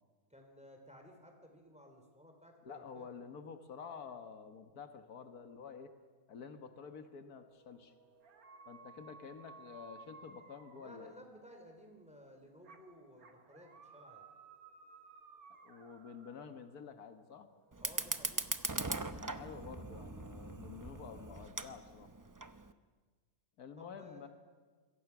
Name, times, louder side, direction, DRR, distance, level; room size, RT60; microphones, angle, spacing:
voice 1, 0.3-3.1 10.7-14.3 17.8-19.2 23.8-24.3, equal, 5° right, 3 dB, 3.9 m, -57 dB
voice 2, 2.6-5.9 6.3-7.9 8.7-11.1 15.6-17.5 19.1-22.1 23.6-24.3, left 6 dB, 85° left, 7 dB, 1.9 m, -50 dB
sound 1, 7.5-11.6 12.6-16.8 17.4-18.9, right 4 dB, 75° right, 2.0 m, -58 dB
Fire, 17.7-22.7, right 3 dB, 20° right, 0.5 m, -40 dB
26.5 x 22.5 x 6.1 m, 1.4 s
omnidirectional pair, 1.6 m